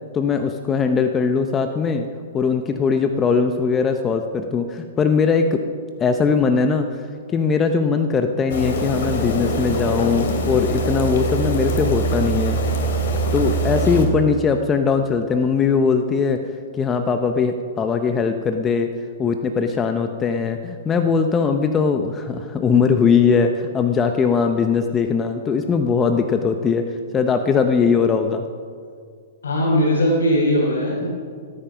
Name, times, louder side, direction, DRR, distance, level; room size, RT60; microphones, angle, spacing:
voice 1, 0.1-2.1 2.3-5.6 6.0-12.6 13.3-16.4 16.7-18.9 19.2-26.8 27.1-28.4, left 5 dB, 20° left, 6 dB, 0.7 m, -20 dB
sound 1, 8.5-14.1, right 2 dB, 65° left, 2.8 m, -23 dB
voice 2, 29.4-31.1, equal, 90° left, -4 dB, 3.3 m, -19 dB
18.0 x 8.9 x 5.8 m, 2.1 s
hypercardioid pair, 135°, 0 cm